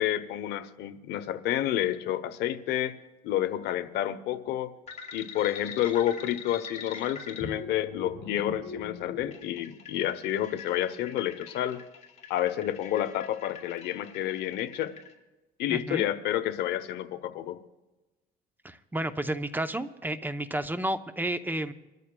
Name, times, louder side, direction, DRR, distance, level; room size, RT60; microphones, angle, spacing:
voice 1, 0.0-2.9 3.2-4.7 5.1-11.8 12.3-14.9 15.6-17.6, left 12 dB, 80° left, 11 dB, 0.8 m, -29 dB
sound 1, 4.9-15.1, left 5 dB, 45° left, 2.4 m, -42 dB
voice 2, 15.7-16.0 18.6-21.7, right 1 dB, 10° right, 10 dB, 0.6 m, -31 dB
29.0 x 13.5 x 2.2 m, 1.1 s
cardioid pair, 110°, 17 cm